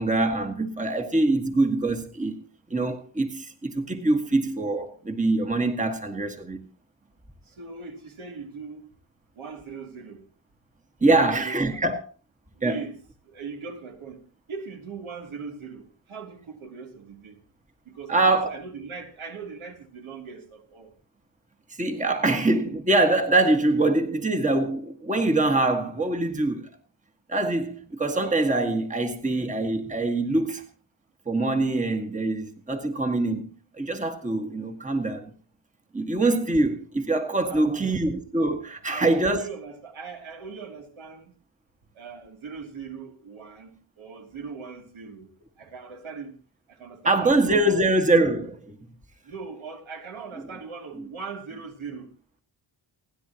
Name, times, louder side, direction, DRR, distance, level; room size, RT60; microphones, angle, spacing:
voice 1, 0.0-2.4 2.7-6.6 11.0-12.0 12.6-12.8 18.1-18.6 21.8-26.7 27.3-30.6 31.2-33.5 33.7-35.3 35.9-39.5 47.0-48.8 51.0-51.1, right 2 dB, 15° right, 1.7 m, -24 dB
voice 2, 7.4-8.9 9.3-10.3 11.0-11.9 12.5-13.0 13.2-14.2 14.5-17.4 17.9-20.9 37.5-38.0 38.9-41.3 41.9-45.3 45.6-46.4 46.7-47.8 49.2-52.1, right 5 dB, 70° right, 3.1 m, -40 dB
29.5 x 10.0 x 2.9 m
wide cardioid pair, 110°, 49 cm